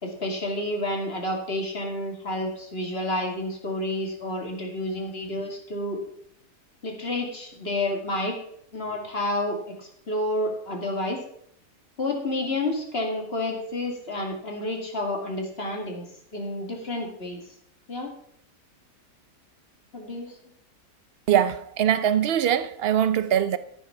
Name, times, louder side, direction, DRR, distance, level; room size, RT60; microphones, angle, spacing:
voice 1, 0.0-6.0 6.8-8.4 8.7-11.2 12.0-16.1 16.3-17.4 17.9-18.1 19.9-20.3, left 1 dB, 35° left, 2.3 m, -30 dB
voice 2, 21.3-23.6, right 9 dB, 75° right, 0.5 m, -22 dB
13.5 x 6.9 x 5.6 m
omnidirectional pair, 1.8 m